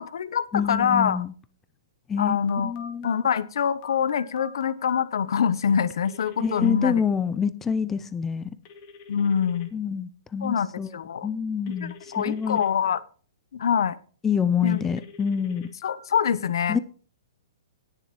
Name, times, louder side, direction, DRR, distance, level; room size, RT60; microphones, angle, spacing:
voice 1, 0.0-1.2 2.2-2.7 3.0-7.0 9.1-9.7 10.4-11.3 11.8-13.0 13.5-14.0 14.6-14.8 15.8-16.8, left 7 dB, 70° left, 18 dB, 0.9 m, -25 dB
voice 2, 0.5-1.3 2.1-2.4 2.6-3.1 6.4-8.5 9.7-10.9 11.2-12.6 14.2-15.7 16.7-16.8, left 7 dB, 10° left, 13 dB, 0.5 m, -26 dB
Telephone, 2.5-5.0 6.0-6.7 8.7-9.7 11.7-12.7 14.7-16.0, left 6 dB, 35° left, 2.1 m, -44 dB
18.5 x 7.0 x 3.1 m, 0.41 s
hypercardioid pair, 155°, 2 cm